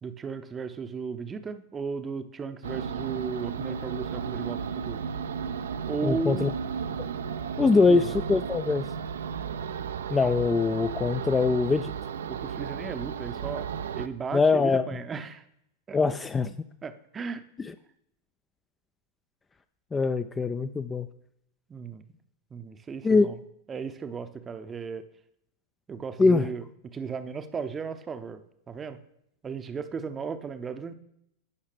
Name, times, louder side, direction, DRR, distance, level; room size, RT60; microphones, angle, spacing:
voice 1, 0.0-5.0 5.9-6.5 7.6-8.2 12.3-13.7 13.9-15.4 15.9-16.0 16.8-17.4 21.7-22.0 22.5-23.4 23.7-25.0 25.9-26.6 26.9-29.0 29.4-31.0, right 5 dB, 20° right, 10 dB, 0.6 m, -35 dB
sound 1, 2.6-14.1, right 7 dB, 65° right, 0.4 m, -34 dB
voice 2, 6.0-6.5 7.6-8.9 10.1-11.9 14.3-14.8 15.9-16.5 19.9-21.1 23.0-23.3 26.2-26.5, left 4 dB, 15° left, 11 dB, 0.3 m, -23 dB
15.5 x 5.6 x 3.4 m, 0.76 s
figure-of-eight pair, 90°, 0 cm